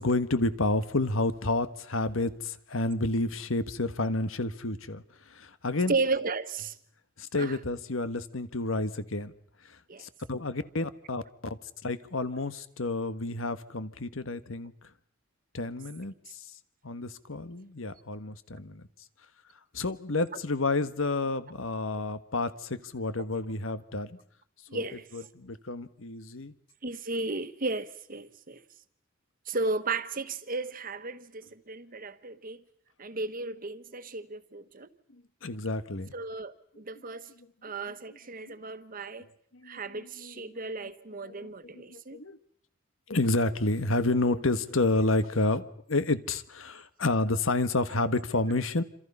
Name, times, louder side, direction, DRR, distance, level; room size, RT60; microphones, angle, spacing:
voice 1, 0.0-5.0 5.3-5.9 7.2-9.3 10.0-11.2 11.8-14.7 15.5-16.1 16.8-18.8 19.7-24.1 24.7-24.8 25.1-26.5 35.4-36.1 39.5-39.8 40.2-40.3 41.3-41.4 41.7-42.4 43.1-48.8, left 2 dB, 90° left, 1.5 m, -30 dB
voice 2, 5.9-6.8 7.4-7.6 9.9-10.0 21.9-22.0 24.7-25.3 26.8-28.6 29.5-32.6 33.0-34.9 36.1-37.3 37.6-39.2 39.6-42.2, right 3 dB, 45° right, 1.3 m, -34 dB
28.0 x 27.0 x 5.6 m
head